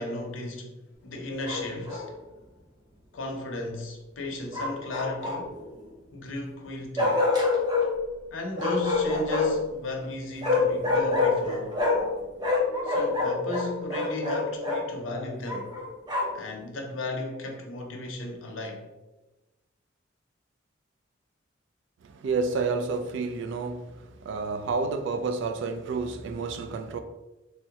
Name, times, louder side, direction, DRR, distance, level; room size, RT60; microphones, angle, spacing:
voice 1, 0.0-2.1 3.1-5.6 6.1-7.2 8.3-11.8 12.8-15.7 16.3-18.9, left 1 dB, 80° left, 0.6 m, -35 dB
Bark, 1.4-2.1 4.5-5.6 7.0-7.9 8.6-9.7 10.4-12.1 12.4-14.8 15.5-16.4, left 3 dB, 20° right, 0.7 m, -26 dB
voice 2, 22.0-27.0, right 4 dB, 65° right, 0.3 m, -30 dB
3.5 x 2.0 x 2.8 m
head